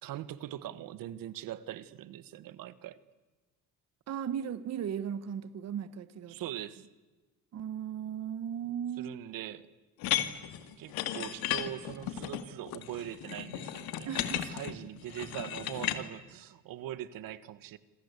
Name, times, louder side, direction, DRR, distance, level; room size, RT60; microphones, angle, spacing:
voice 1, 0.0-3.0 6.3-6.9 9.0-9.7 10.8-17.8, right 12 dB, 70° right, 1.4 m, -42 dB
voice 2, 4.1-6.4 7.5-9.1 14.1-14.6, right 9 dB, 45° right, 1.1 m, -36 dB
sound 1, 10.0-16.0, left 12 dB, 80° left, 2.2 m, -35 dB
27.5 x 26.0 x 8.2 m
cardioid pair, 135°, 36 cm